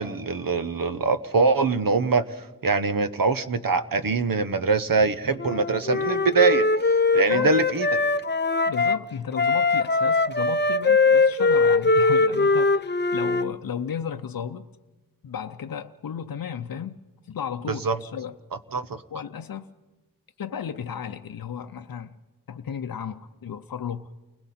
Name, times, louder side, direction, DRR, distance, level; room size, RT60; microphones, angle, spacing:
voice 1, 0.0-2.2 2.6-6.7 7.1-7.9 17.8-17.9 18.7-19.0, right 4 dB, 70° right, 1.0 m, -23 dB
Wind instrument woodwind instrument, 5.4-9.0 9.4-13.5, left 3 dB, 30° left, 0.7 m, -21 dB
voice 2, 8.7-14.7 15.2-18.4 19.1-19.7 20.4-22.2 22.5-24.1, left 7 dB, 75° left, 0.6 m, -34 dB
29.0 x 21.0 x 4.3 m
wide cardioid pair, 65°, 35 cm